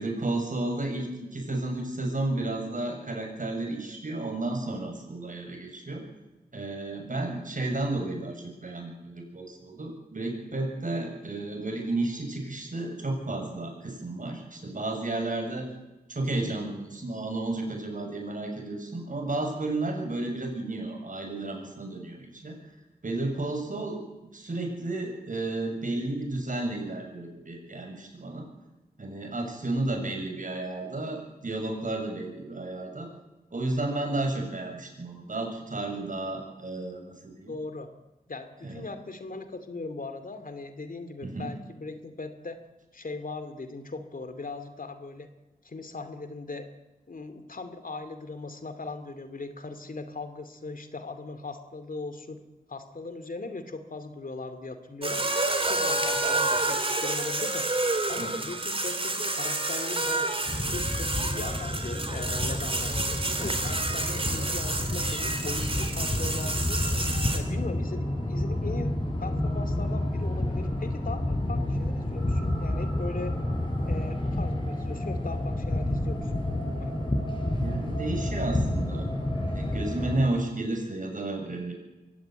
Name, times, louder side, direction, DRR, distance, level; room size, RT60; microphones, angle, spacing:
voice 1, 0.0-6.0 6.5-15.7 16.1-22.5 23.0-28.5 29.0-33.1 33.5-37.5 38.6-38.9 41.2-41.5 58.2-58.3 77.6-79.1 79.3-81.7, right 2 dB, 55° right, 3 dB, 7.3 m, -32 dB
voice 2, 37.5-37.9 38.3-42.6 42.9-45.3 45.6-46.7 47.1-52.4 52.7-55.2 55.6-57.7 58.1-60.3 60.6-63.0 63.4-66.8 67.3-73.4 73.8-76.4 76.8-76.9, left 3 dB, 55° left, 9 dB, 2.5 m, -39 dB
sound 1, 55.0-67.4, right 2 dB, 35° right, 3.6 m, -29 dB
sound 2, 60.5-80.2, left 1 dB, 30° left, 6.0 m, -30 dB
23.5 x 16.0 x 9.5 m, 1.0 s
wide cardioid pair, 75°, 16 cm